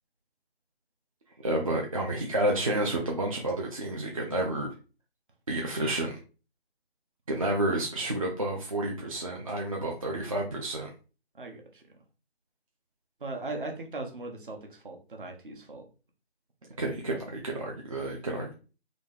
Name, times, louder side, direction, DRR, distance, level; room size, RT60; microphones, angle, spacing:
voice 1, 1.4-4.7 5.5-6.2 7.3-10.9 16.8-18.5, right 1 dB, 35° right, -1 dB, 0.5 m, -30 dB
voice 2, 13.2-15.8 17.1-17.2, right 2 dB, 55° right, 3 dB, 1.2 m, -38 dB
4.0 x 2.7 x 3.6 m, 0.34 s
figure-of-eight pair, 155°, 32 cm